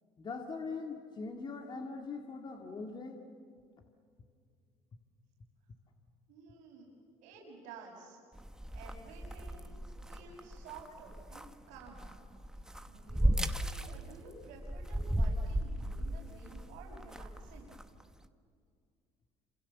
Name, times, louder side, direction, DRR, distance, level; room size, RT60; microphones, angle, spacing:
voice 1, 0.2-3.2, left 4 dB, 35° left, 3 dB, 2.1 m, -41 dB
voice 2, 6.3-6.9 7.2-8.2 8.7-12.2 12.9-17.8, right 4 dB, 80° right, -5 dB, 5.9 m, -52 dB
sound 1, 8.4-18.2, equal, 5° right, 1.2 m, -36 dB
28.0 x 26.5 x 7.2 m, 2.2 s
supercardioid pair, 95°, 13 cm